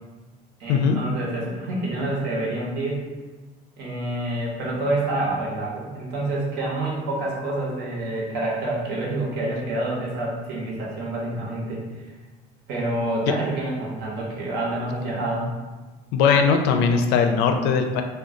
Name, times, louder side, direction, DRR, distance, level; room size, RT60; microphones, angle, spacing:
voice 1, 0.6-3.0 3.8-11.8 12.7-15.5, right 2 dB, 70° right, -3 dB, 1.0 m, -27 dB
voice 2, 16.1-18.0, left 6 dB, 85° left, 6 dB, 0.4 m, -19 dB
2.6 x 2.3 x 3.7 m, 1.2 s
cardioid pair, 165°, 17 cm